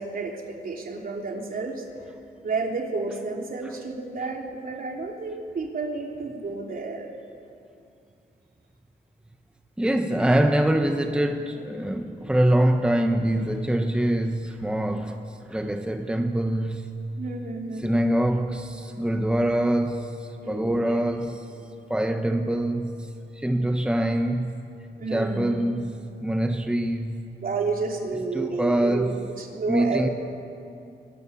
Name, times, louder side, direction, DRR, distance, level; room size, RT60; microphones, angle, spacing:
voice 1, 0.0-1.8 2.4-7.1 17.2-18.2 20.4-21.0 25.0-25.5 27.4-29.1 29.4-30.1, right 3 dB, 55° right, 3.4 m, -31 dB
voice 2, 9.8-15.2 15.5-17.0 17.8-21.5 21.9-24.5 25.1-27.3 28.3-29.2 29.7-30.1, right 1 dB, 5° right, 1.1 m, -24 dB
23.5 x 21.0 x 9.9 m
wide cardioid pair, 145°, 17 cm